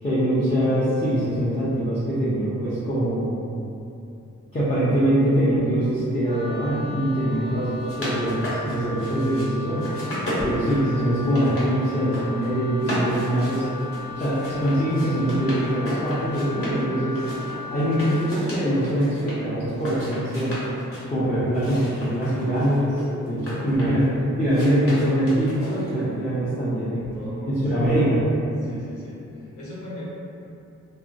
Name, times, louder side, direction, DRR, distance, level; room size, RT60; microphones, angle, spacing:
voice 1, 0.0-3.4 4.5-7.7 8.0-9.9 10.4-13.7 14.1-17.3 17.7-20.5 21.1-22.9 23.2-24.1 24.4-27.1 27.5-28.2, right 1 dB, 25° left, -11 dB, 0.5 m, -23 dB
Wind instrument woodwind instrument, 6.2-18.3, left 3 dB, 35° right, 0.4 m, -37 dB
voice 2, 7.2-7.6 26.9-27.9 28.6-30.0, left 1 dB, 80° left, -7 dB, 0.8 m, -40 dB
sound 1, 7.6-9.5 9.8-11.7 12.0-12.5 12.8-16.8 17.1-19.4 19.7-21.1 21.5-24.0 24.5-26.0, equal, 50° left, 0.8 m, -34 dB
3.0 x 2.0 x 2.5 m, 2.7 s
wide cardioid pair, 165°, 30 cm